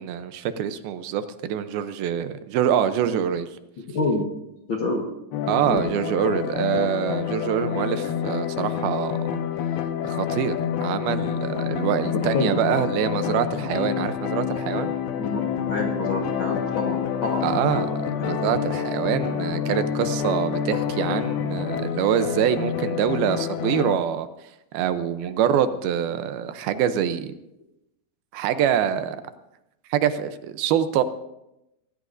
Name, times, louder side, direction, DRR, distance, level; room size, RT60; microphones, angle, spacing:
voice 1, 0.0-3.5 5.5-9.4 10.0-14.9 17.4-17.9 18.2-24.3 24.7-27.3 28.3-29.2 29.9-31.0, right 9 dB, 80° right, 11 dB, 2.6 m, -25 dB
voice 2, 3.9-4.3 4.7-5.1 5.6-5.8 12.1-12.5 15.2-17.9 18.2-18.3, left 3 dB, 65° left, 0 dB, 1.2 m, -27 dB
sound 1, 5.3-24.0, left 8 dB, 90° left, 3.0 m, -28 dB
24.5 x 16.0 x 2.6 m, 0.87 s
omnidirectional pair, 4.4 m